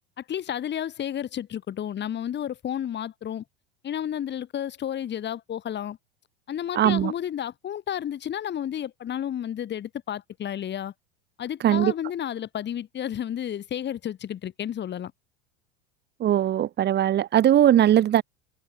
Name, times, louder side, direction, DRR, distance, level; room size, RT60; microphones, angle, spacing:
voice 1, 0.2-3.4 3.8-6.0 6.5-10.9 11.4-15.1, left 10 dB, 35° left, 5.3 m, -31 dB
voice 2, 6.7-7.1 11.6-11.9 16.2-18.2, right 11 dB, 35° right, 1.4 m, -20 dB
hypercardioid pair, 80°, 31 cm